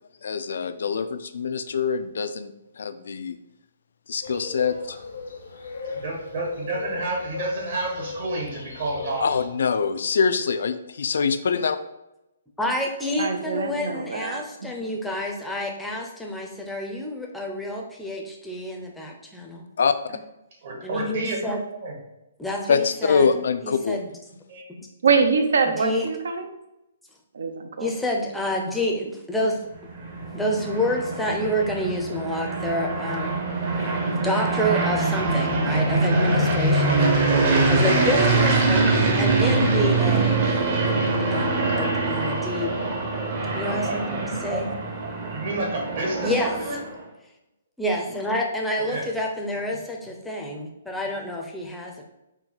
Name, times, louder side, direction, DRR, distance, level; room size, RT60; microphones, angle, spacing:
voice 1, 0.2-3.4 4.1-5.0 9.2-11.8 19.8-19.9 22.7-24.0, left 5 dB, 70° left, 11 dB, 0.3 m, -24 dB
sound 1, 4.2-9.5, left 4 dB, 90° left, 0.7 m, -37 dB
voice 2, 5.8-9.2 20.6-21.4 21.7-21.9 24.5-24.6 43.5-44.0 44.4-46.8 48.8-49.1, right 2 dB, 60° right, -2 dB, 1.5 m, -30 dB
voice 3, 12.6-19.6 20.8-21.6 22.4-23.3 23.6-24.1 25.8-26.1 27.8-29.6 30.3-33.4 34.2-37.1 37.7-41.0 41.3-41.5 41.8-42.7 43.5-44.7 46.2-46.5 47.8-52.0, left 1 dB, 5° left, 0 dB, 0.5 m, -28 dB
voice 4, 13.2-14.4 25.0-26.5 27.3-27.9, right 5 dB, 75° right, 7 dB, 0.6 m, -23 dB
sound 2, 29.8-46.9, right 3 dB, 40° right, 0.8 m, -23 dB
4.2 x 2.2 x 3.9 m, 0.92 s
hypercardioid pair, 155°, 0 cm